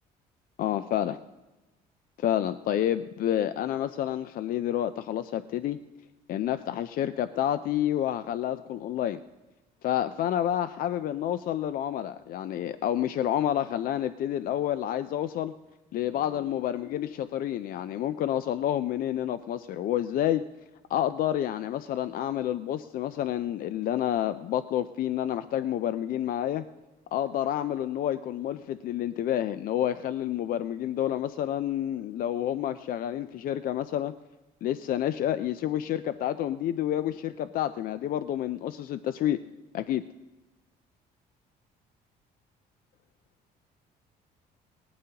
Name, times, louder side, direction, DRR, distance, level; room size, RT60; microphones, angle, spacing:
voice 1, 0.6-1.2 2.2-5.8 6.3-9.2 9.8-15.5 15.9-20.4 20.9-26.6 27.1-34.1 34.6-39.4 39.7-40.0, left 11 dB, 60° left, 12 dB, 0.4 m, -29 dB
19.0 x 12.5 x 2.9 m, 1.1 s
cardioid pair, 110°, 17 cm